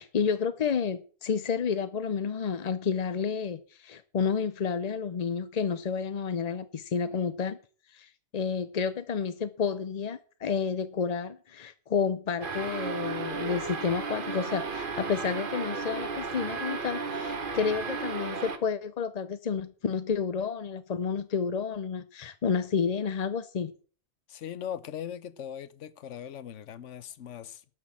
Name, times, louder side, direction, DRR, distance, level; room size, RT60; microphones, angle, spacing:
voice 1, 0.0-7.6 7.9-23.7, left 6 dB, 45° left, 0.5 m, -30 dB
sound 1, 12.4-18.6, right 4 dB, 45° right, 1.2 m, -34 dB
voice 2, 24.3-27.6, left 9 dB, 70° left, 1.1 m, -39 dB
12.0 x 6.2 x 7.3 m
omnidirectional pair, 1.3 m